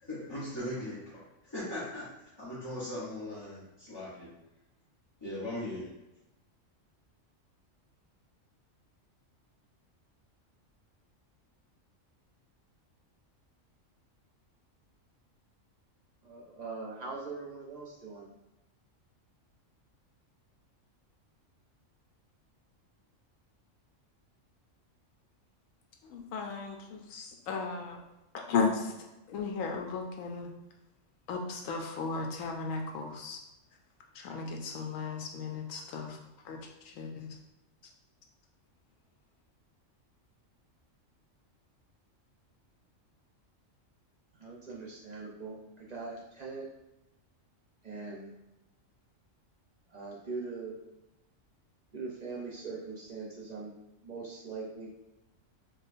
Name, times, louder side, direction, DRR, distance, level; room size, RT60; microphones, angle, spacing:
voice 1, 0.0-4.3 5.2-5.9, left 1 dB, 25° left, -11 dB, 0.7 m, -39 dB
voice 2, 16.2-18.3 44.3-46.7 47.8-48.3 49.9-50.7 51.9-53.7 54.0-54.9, right 4 dB, 40° right, -4 dB, 0.7 m, -41 dB
voice 3, 26.0-28.0 28.3-28.9 29.3-30.5 31.3-33.4 34.2-36.2 36.4-36.6 37.0-37.3, left 4 dB, 85° left, 2 dB, 1.0 m, -35 dB
4.8 x 2.3 x 2.6 m, 0.96 s
omnidirectional pair, 1.3 m